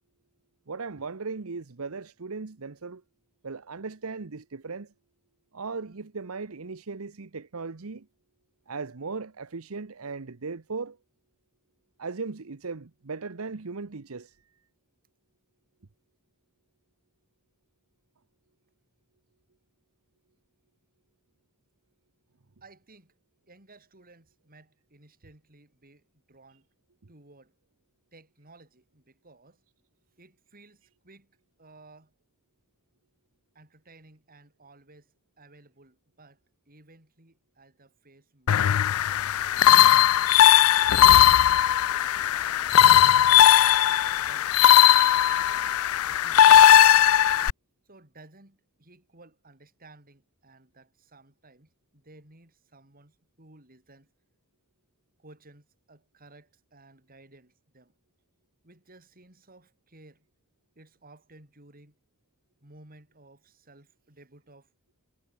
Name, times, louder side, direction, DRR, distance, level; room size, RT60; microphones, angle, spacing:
voice 1, 0.7-3.0 3.4-4.9 5.5-8.1 8.7-11.0 12.0-14.3, right 4 dB, 85° right, 0.9 m, -37 dB
voice 2, 22.6-23.1 23.5-26.7 27.1-27.5 28.1-29.6 30.2-32.1 33.5-36.4 36.7-38.7 39.1-39.9 40.8-43.7 44.2-45.7 46.0-46.9 47.8-54.1 55.2-58.0 58.6-60.3 60.7-62.0 62.6-64.7, right 2 dB, 45° right, 5.0 m, -56 dB
sound 1, 38.5-47.5, left 11 dB, 75° left, 0.4 m, -18 dB
head